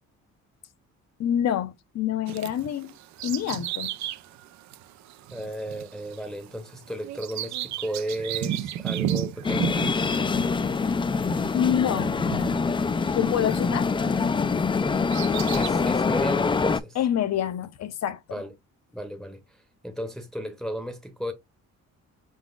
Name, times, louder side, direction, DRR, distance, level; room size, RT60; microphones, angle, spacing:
voice 1, 1.2-2.9 3.2-3.9 11.5-12.2 13.1-13.9 16.9-18.2, left 10 dB, 60° left, 0.6 m, -26 dB
Bird vocalization bird call bird song, 2.3-14.4 14.8-15.7, right 11 dB, 65° right, 0.4 m, -34 dB
voice 2, 5.3-9.9 13.5-13.7 14.8-15.1 15.5-17.0 18.3-18.5 18.9-19.4 19.8-21.3, right 1 dB, ahead, 0.8 m, -34 dB
sound 1, 9.4-16.8, left 4 dB, 15° left, 0.3 m, -25 dB
4.7 x 4.0 x 2.4 m
cardioid pair, 90°, 30 cm